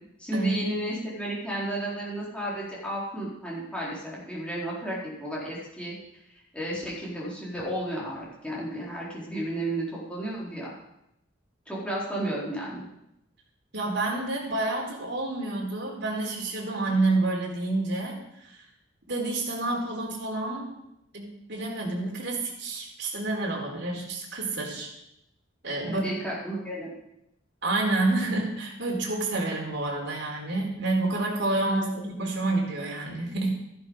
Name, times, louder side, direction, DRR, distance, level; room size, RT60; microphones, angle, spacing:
voice 1, 0.2-5.9 6.5-10.7 11.7-12.8 25.8-26.9 31.7-32.0, right 1 dB, 5° left, -6 dB, 4.4 m, -33 dB
voice 2, 13.7-18.2 18.5-18.6 19.1-20.7 21.1-24.9 25.6-26.1 27.6-33.5, right 2 dB, 55° right, -2 dB, 4.1 m, -28 dB
14.5 x 11.0 x 5.0 m, 0.82 s
head